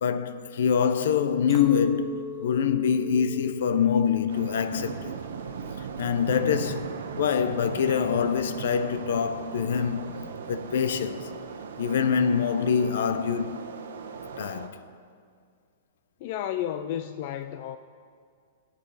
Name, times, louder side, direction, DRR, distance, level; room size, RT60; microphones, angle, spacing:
voice 1, 0.0-5.2 5.8-10.0 10.5-11.3 11.8-13.7 14.4-14.8, left 7 dB, 65° left, 0.7 m, -25 dB
Chink clink, 1.5-5.8 6.3-6.7, left 4 dB, 10° right, 0.5 m, -44 dB
sound 1, 2.9-13.0 13.3-14.1, right 7 dB, 75° right, 0.8 m, -41 dB
sound 2, 4.3-14.7, right 6 dB, 90° right, 1.1 m, -41 dB
voice 2, 16.2-17.8, left 11 dB, 40° left, 0.4 m, -32 dB
19.5 x 8.2 x 4.1 m
hypercardioid pair, 165°, 0 cm